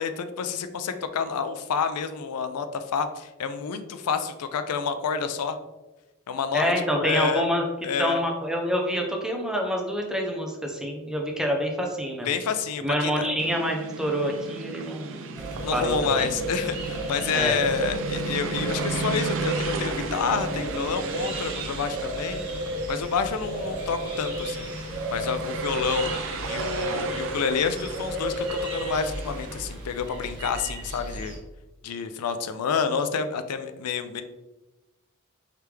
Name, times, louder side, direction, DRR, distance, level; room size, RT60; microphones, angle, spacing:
voice 1, 0.0-5.6 6.3-7.5 7.8-8.2 12.3-13.3 15.6-22.4 22.9-26.1 26.5-31.3 31.8-34.2, left 6 dB, 90° left, 10 dB, 0.4 m, -29 dB
voice 2, 6.5-7.6 8.0-12.3 12.8-16.3 17.3-17.6, equal, 5° right, 1 dB, 0.7 m, -27 dB
sound 1, 13.4-29.8, right 4 dB, 60° right, 0.5 m, -35 dB
sound 2, 15.4-31.4, right 1 dB, 20° right, 1.5 m, -33 dB
4.8 x 3.4 x 3.3 m, 1.1 s
head